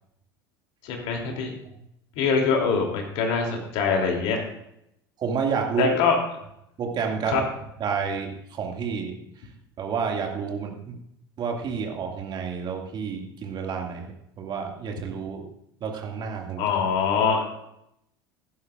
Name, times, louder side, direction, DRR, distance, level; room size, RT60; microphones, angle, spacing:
voice 1, 0.8-1.5 2.2-4.4 5.8-6.2 7.3-7.4 16.6-17.5, left 5 dB, 55° left, 1 dB, 3.1 m, -23 dB
voice 2, 5.2-5.9 6.8-7.4 7.8-9.2 9.8-11.0 11.4-15.5 15.8-16.6, right 6 dB, 40° right, 2 dB, 2.2 m, -29 dB
15.5 x 11.5 x 2.5 m, 0.77 s
figure-of-eight pair, 70°, 12 cm